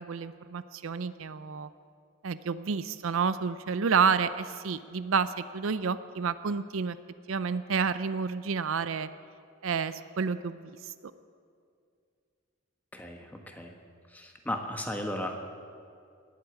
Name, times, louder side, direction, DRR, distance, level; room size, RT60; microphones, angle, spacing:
voice 1, 0.0-1.7 2.2-7.0 7.3-9.1 9.6-10.9, right 5 dB, 75° right, 13 dB, 0.5 m, -29 dB
voice 2, 12.9-13.7 14.1-15.4, left 1 dB, 10° left, 3 dB, 1.3 m, -35 dB
19.0 x 8.2 x 8.2 m, 2.3 s
head